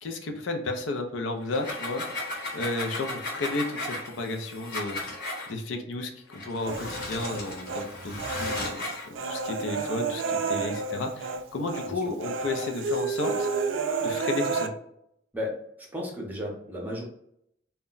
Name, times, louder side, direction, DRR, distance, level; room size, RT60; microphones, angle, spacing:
voice 1, 0.0-2.2 2.5-5.0 5.5-13.5 14.0-14.7, left 2 dB, 80° left, 4 dB, 0.5 m, -33 dB
sound 1, 1.4-5.5 6.3-9.1, left 2 dB, 45° left, 0.8 m, -35 dB
Human voice, 6.7-7.9 8.2-11.4 11.7-11.9 12.2-14.7, right 4 dB, 80° right, 0.3 m, -30 dB
voice 2, 15.9-17.0, left 1 dB, 10° right, -2 dB, 0.6 m, -33 dB
2.2 x 2.1 x 3.7 m, 0.73 s
head